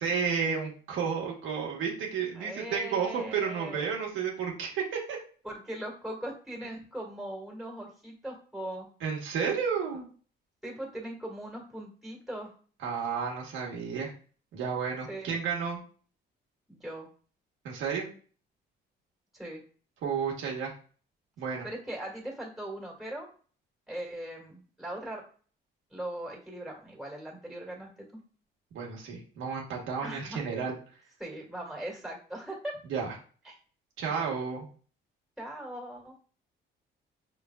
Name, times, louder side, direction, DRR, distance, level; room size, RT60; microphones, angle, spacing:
voice 1, 0.0-5.2 9.0-10.1 12.8-14.1 14.5-15.8 17.6-18.1 20.0-20.7 21.4-21.7 28.7-30.7 32.9-33.1 34.0-34.6, right 6 dB, 90° right, -2 dB, 1.3 m, -32 dB
voice 2, 2.4-3.9 5.4-8.9 10.6-12.6 15.1-15.3 16.7-17.1 19.3-19.6 21.6-23.3 23.9-25.2 25.9-28.1 30.0-30.4 31.2-32.7 33.4-33.6 34.1-34.3 35.4-36.2, right 1 dB, ahead, -2 dB, 1.9 m, -40 dB
5.2 x 3.2 x 2.3 m, 0.41 s
cardioid pair, 90°, 20 cm